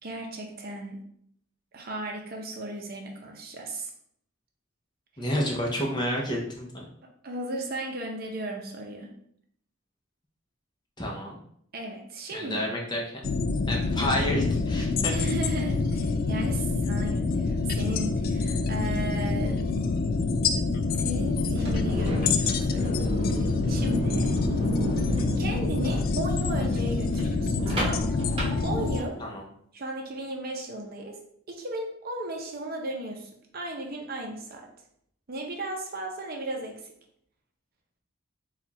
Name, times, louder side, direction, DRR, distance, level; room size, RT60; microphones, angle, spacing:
voice 1, 0.0-1.0 1.7-3.9 7.2-9.1 11.7-12.6 15.1-20.0 21.0-22.9 23.7-24.4 25.4-28.2 28.6-29.2 29.7-34.7 35.3-36.9, right 1 dB, 45° right, 2 dB, 0.6 m, -35 dB
voice 2, 5.2-6.8 11.0-11.4 12.3-13.2 13.7-15.2 29.2-29.4, equal, 20° left, -1 dB, 0.8 m, -30 dB
sound 1, 13.2-29.0, left 4 dB, 45° left, 0.3 m, -26 dB
sound 2, 21.5-29.3, equal, 25° right, 1.1 m, -32 dB
4.3 x 2.4 x 4.1 m, 0.68 s
head